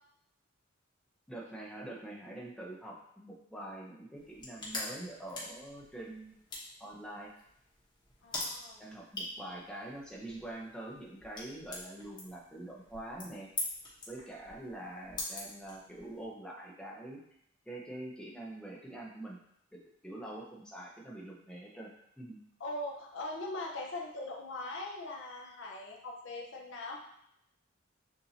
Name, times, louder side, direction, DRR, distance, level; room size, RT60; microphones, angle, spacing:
voice 1, 1.3-6.3 6.8-7.3 8.8-13.5 14.1-17.2 17.7-19.4 20.0-22.4, right 1 dB, 5° left, -3 dB, 0.7 m, -45 dB
sound 1, 4.2-16.2, left 2 dB, 25° left, 1.1 m, -44 dB
voice 2, 8.2-8.8 22.6-27.0, left 2 dB, 65° left, -1 dB, 0.8 m, -41 dB
6.8 x 2.7 x 2.8 m, 0.76 s
head